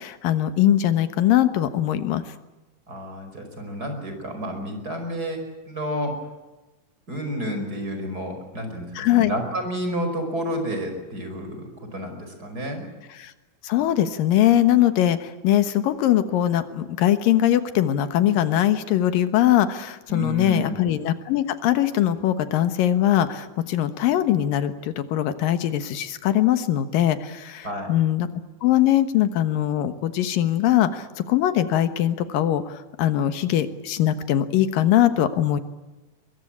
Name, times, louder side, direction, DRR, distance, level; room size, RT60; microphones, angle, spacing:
voice 1, 0.0-2.2 9.0-9.3 13.2-13.3 13.6-28.3 28.6-35.6, left 12 dB, 90° left, 10 dB, 3.0 m, -21 dB
voice 2, 2.9-6.1 7.1-12.9 20.1-20.8 27.6-28.0, equal, 25° right, 5 dB, 5.5 m, -30 dB
23.0 x 22.5 x 8.6 m, 1.1 s
omnidirectional pair, 3.8 m